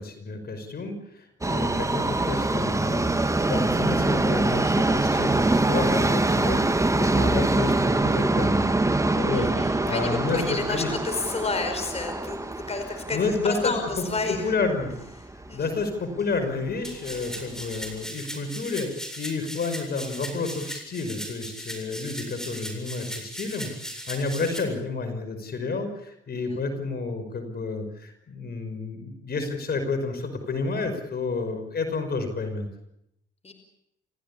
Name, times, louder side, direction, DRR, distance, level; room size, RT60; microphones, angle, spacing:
voice 1, 0.0-10.9 13.1-14.9 15.3-32.7, left 3 dB, 50° left, 8 dB, 5.6 m, -30 dB
Subway metro underground, 1.4-15.5 15.8-15.9 16.8-16.9 17.2-17.3 17.9-18.0, right 2 dB, 15° right, 1.6 m, -24 dB
voice 2, 9.3-12.4 12.7-14.5 15.5-15.8 26.5-26.6 33.4-33.5, left 3 dB, 30° left, 7 dB, 5.1 m, -31 dB
sound 1, 16.8-24.6, equal, 5° left, 7.7 m, -38 dB
29.5 x 16.0 x 8.6 m, 0.79 s
supercardioid pair, 70°, 20 cm